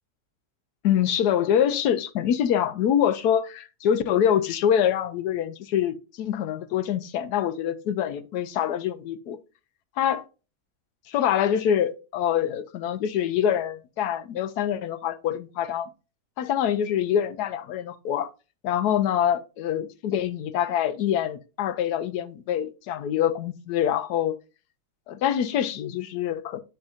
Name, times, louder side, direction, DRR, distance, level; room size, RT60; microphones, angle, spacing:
voice 1, 0.8-9.4 10.0-10.2 11.1-15.9 16.4-18.3 18.6-24.4 25.1-26.6, left 9 dB, 80° left, 1.2 m, -25 dB
7.9 x 5.7 x 2.4 m
omnidirectional pair, 1.7 m